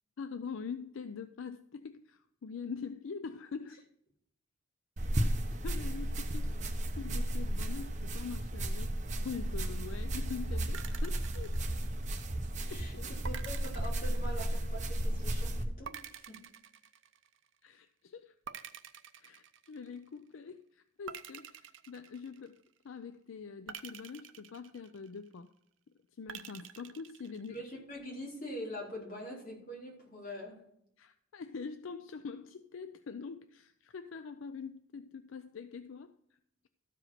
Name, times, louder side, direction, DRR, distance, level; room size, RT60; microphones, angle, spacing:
voice 1, 0.2-3.8 5.2-6.7 7.0-11.7 12.7-13.1 17.6-18.7 19.2-25.5 26.2-27.6 31.0-36.1, left 5 dB, 70° left, 0.4 m, -44 dB
sound 1, 5.0-15.7, right 1 dB, 35° right, 0.9 m, -34 dB
sound 2, 10.7-12.3 13.2-14.9 15.9-17.6 18.5-20.1 21.1-22.8 23.7-25.4 26.3-27.7, right 8 dB, 65° right, 0.6 m, -48 dB
voice 2, 12.6-16.4 27.5-30.6, equal, 40° left, 3.8 m, -44 dB
13.0 x 5.0 x 5.7 m
head